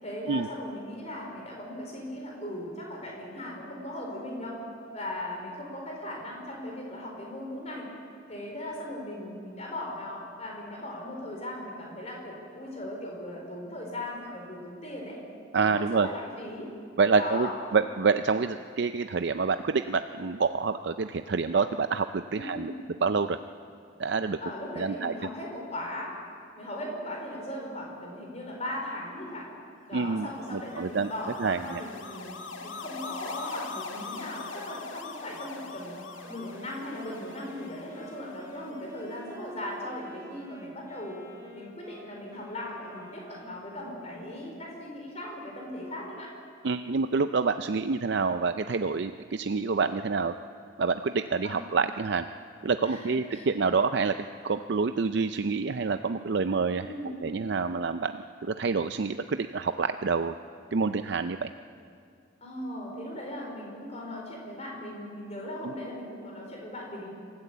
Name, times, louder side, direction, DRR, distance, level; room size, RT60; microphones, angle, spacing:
voice 1, 0.0-4.6 4.9-7.9 8.3-15.2 15.6-16.7 17.1-17.8 22.3-22.8 24.4-26.1 26.5-29.5 29.9-35.9 36.3-41.2 41.5-46.3 51.4-51.7 52.8-53.5 56.8-57.1 62.4-67.1, left 1 dB, 35° left, -1 dB, 4.6 m, -38 dB
voice 2, 15.5-16.1 17.0-22.7 23.0-23.4 24.0-24.4 24.8-25.1 29.9-31.1 31.4-31.8 46.6-50.3 50.8-52.3 52.6-54.1 54.4-56.9 57.2-58.1 58.4-60.4 60.7-61.5 65.6-65.7, right 4 dB, 60° right, 9 dB, 0.5 m, -27 dB
sound 1, 30.2-39.5, left 4 dB, 85° left, 1.8 m, -43 dB
Wind instrument woodwind instrument, 35.9-44.1, right 1 dB, 20° right, 3.2 m, -49 dB
25.5 x 13.5 x 8.3 m, 2.3 s
head